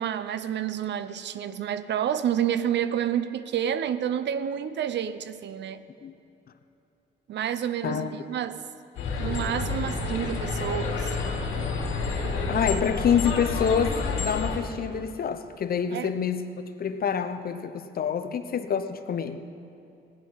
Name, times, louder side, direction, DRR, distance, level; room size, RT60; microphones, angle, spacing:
voice 1, 0.0-5.8 7.3-8.6 9.2-11.2 15.9-16.1, right 9 dB, 65° right, 13 dB, 0.6 m, -29 dB
voice 2, 7.8-8.1 12.5-16.5 16.8-19.4, left 7 dB, 50° left, 10 dB, 0.8 m, -27 dB
sound 1, 9.0-14.6, left 4 dB, 85° left, 2.8 m, -29 dB
16.5 x 10.5 x 5.6 m, 2.7 s
cardioid pair, 90°, 20 cm